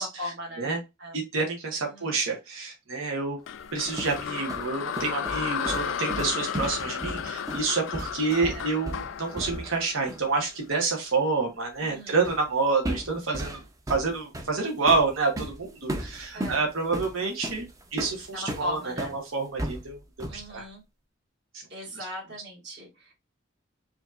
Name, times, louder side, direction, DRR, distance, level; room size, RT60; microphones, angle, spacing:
voice 1, 0.0-0.7 1.0-1.2 1.8-2.2 8.3-8.8 11.8-12.2 16.3-16.6 18.3-19.2 20.3-20.8 21.7-23.1, left 1 dB, 60° right, -4 dB, 2.0 m, -38 dB
voice 2, 1.1-3.4 3.7-13.6 13.9-18.3 18.6-20.0 20.3-20.7, right 4 dB, 90° right, 1 dB, 1.2 m, -28 dB
sound 1, 3.5-10.6, left 8 dB, 70° left, 0.3 m, -34 dB
sound 2, 3.6-9.8 10.1-10.3 12.2-12.5 12.8-19.2 19.6-20.5, right 1 dB, 15° right, 0.5 m, -35 dB
4.9 x 2.8 x 2.5 m, 0.23 s
head